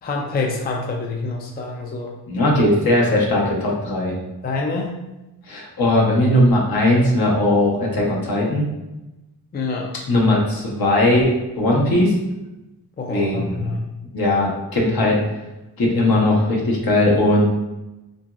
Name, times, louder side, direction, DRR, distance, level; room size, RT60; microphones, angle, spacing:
voice 1, 0.0-2.1 4.4-5.0 9.5-9.9 13.0-13.9, left 3 dB, 25° left, 0 dB, 0.4 m, -26 dB
voice 2, 2.3-4.1 5.5-8.7 10.1-12.1 13.1-13.7 14.1-15.2 15.8-17.4, left 1 dB, 65° left, -3 dB, 0.9 m, -18 dB
2.9 x 2.5 x 2.3 m, 0.99 s
cardioid pair, 55°, 40 cm